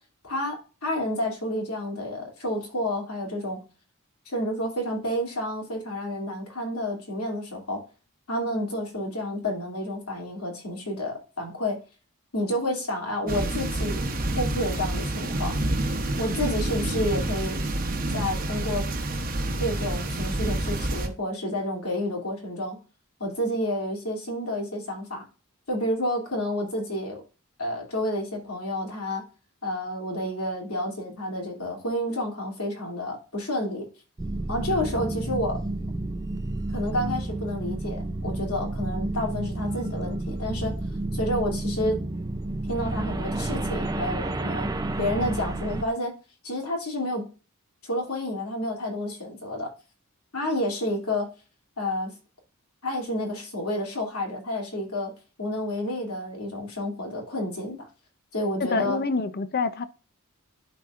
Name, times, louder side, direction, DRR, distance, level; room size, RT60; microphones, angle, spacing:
voice 1, 0.2-0.5 0.8-3.6 4.3-7.8 8.3-11.8 12.3-14.0 14.4-15.5 16.2-17.6 18.1-18.8 19.6-22.8 23.2-25.2 25.7-27.2 27.6-29.2 29.6-33.8 34.5-35.6 36.7-40.7 41.1-42.0 42.7-44.7 45.0-46.1 46.4-47.2 47.8-49.7 50.3-51.3 51.8-52.1 52.8-55.1 55.4-57.8 58.3-59.0, left 1 dB, 80° left, 2.9 m, -29 dB
sound 1, 13.3-21.1, right 1 dB, 40° right, 1.0 m, -28 dB
sound 2, 34.2-45.8, right 2 dB, 15° right, 0.5 m, -30 dB
voice 2, 58.6-59.9, left 4 dB, 45° left, 0.7 m, -26 dB
11.5 x 4.3 x 2.5 m
head